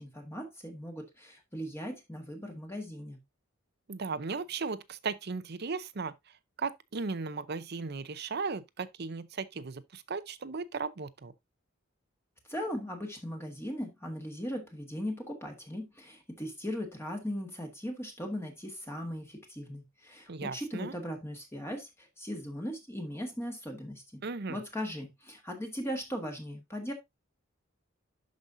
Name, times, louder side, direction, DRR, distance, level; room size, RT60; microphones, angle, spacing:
voice 1, 0.0-3.2 12.5-24.2 24.5-26.9, equal, 10° left, 1.5 m, -38 dB
voice 2, 3.9-6.1 6.6-11.3 20.3-20.9 24.2-24.6, right 4 dB, 50° right, 0.6 m, -36 dB
11.5 x 5.3 x 2.6 m
head